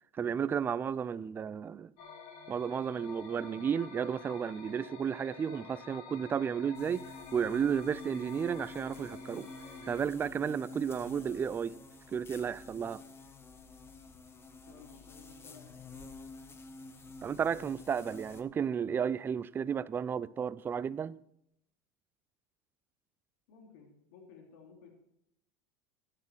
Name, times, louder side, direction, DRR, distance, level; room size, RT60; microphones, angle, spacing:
voice 1, 0.1-1.9 2.5-7.0 7.3-9.5 9.9-11.8 12.1-13.0 17.2-21.1, right 7 dB, 20° right, 0.3 m, -33 dB
sound 1, 2.0-10.0, left 5 dB, 60° left, 3.2 m, -50 dB
sound 2, 6.7-18.4, left 3 dB, 20° left, 1.2 m, -49 dB
voice 2, 14.7-15.7 23.5-24.9, left 5 dB, 80° left, 2.8 m, -55 dB
14.0 x 9.6 x 4.5 m
supercardioid pair, 125°, 11 cm